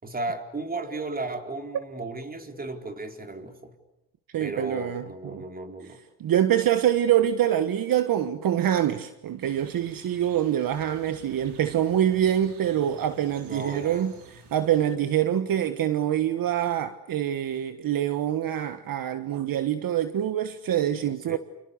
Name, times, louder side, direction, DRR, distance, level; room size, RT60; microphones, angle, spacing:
voice 1, 0.0-3.7 4.4-6.0 13.4-14.1 21.3-21.4, right 2 dB, 20° right, 4.2 m, -35 dB
voice 2, 4.3-5.4 6.2-14.1 14.5-21.4, right 11 dB, 50° right, 1.5 m, -25 dB
sound 1, 9.4-15.0, right 5 dB, 70° right, 5.8 m, -51 dB
29.5 x 29.0 x 6.9 m
cardioid pair, 120°, 43 cm